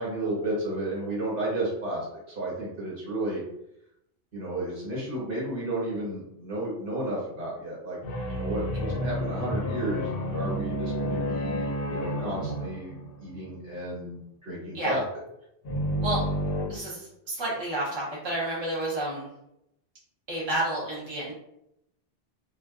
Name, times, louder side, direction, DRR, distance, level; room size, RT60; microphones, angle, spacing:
voice 1, 0.0-3.4 4.3-8.0 8.3-15.0, right 1 dB, 60° right, -6 dB, 1.2 m, -32 dB
sound 1, 8.0-13.5 15.6-16.7, equal, 70° left, 0.8 m, -30 dB
voice 2, 16.7-19.3 20.3-21.3, right 1 dB, 30° right, -6 dB, 0.7 m, -30 dB
2.4 x 2.1 x 2.4 m, 0.80 s
omnidirectional pair, 1.0 m